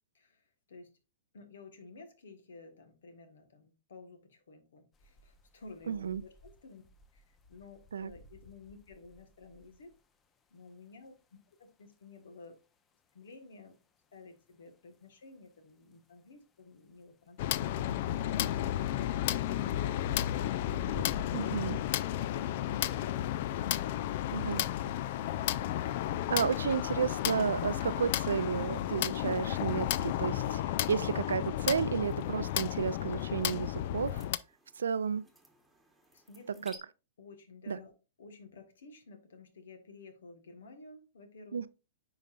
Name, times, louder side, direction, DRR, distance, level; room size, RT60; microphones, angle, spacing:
voice 1, 0.1-1.0 1.3-6.8 7.1-9.9 10.5-11.1 11.6-12.6 13.1-13.7 14.1-17.8 18.2-18.6 36.1-36.7 37.2-37.9 38.2-41.6, left 3 dB, 75° left, 1.5 m, -53 dB
sound 1, 4.9-22.0, left 1 dB, 25° left, 0.8 m, -55 dB
voice 2, 5.9-6.2 7.9-8.1 21.3-21.8 24.3-24.7 26.3-30.6 30.9-34.2 34.8-35.2 36.6-36.7 37.7-37.8 41.5-41.7, right 6 dB, 80° right, 0.4 m, -32 dB
sound 2, 17.4-34.4, left 12 dB, 55° left, 0.4 m, -33 dB
sound 3, 31.7-36.8, right 1 dB, 5° right, 1.4 m, -59 dB
9.5 x 4.0 x 2.5 m
hypercardioid pair, 115°, 0 cm